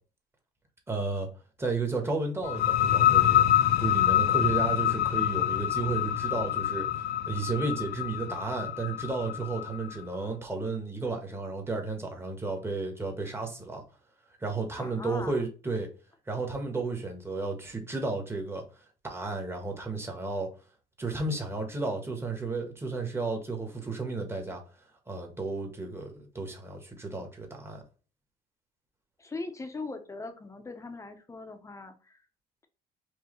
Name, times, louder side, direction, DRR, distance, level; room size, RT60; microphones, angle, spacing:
voice 1, 0.9-1.3 1.6-3.5 3.8-13.8 14.4-15.9 16.3-18.6 19.0-20.5 21.0-24.6 25.1-27.8, right 3 dB, 15° right, 1.2 m, -33 dB
sound 1, 2.4-9.9, left 11 dB, 75° left, 0.5 m, -26 dB
voice 2, 14.7-15.4 29.2-32.2, left 3 dB, 20° left, 0.7 m, -40 dB
4.6 x 2.8 x 3.0 m
cardioid pair, 110°, 17 cm